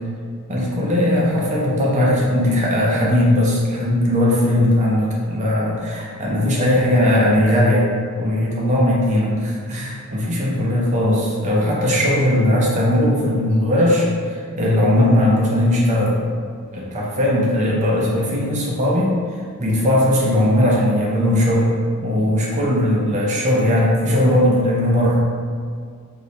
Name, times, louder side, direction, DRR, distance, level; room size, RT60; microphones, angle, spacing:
voice 1, 0.5-7.9 8.1-16.2 16.7-19.1 19.6-21.7 22.0-25.2, left 1 dB, 30° right, -5 dB, 0.6 m, -18 dB
2.7 x 2.7 x 3.1 m, 2.1 s
head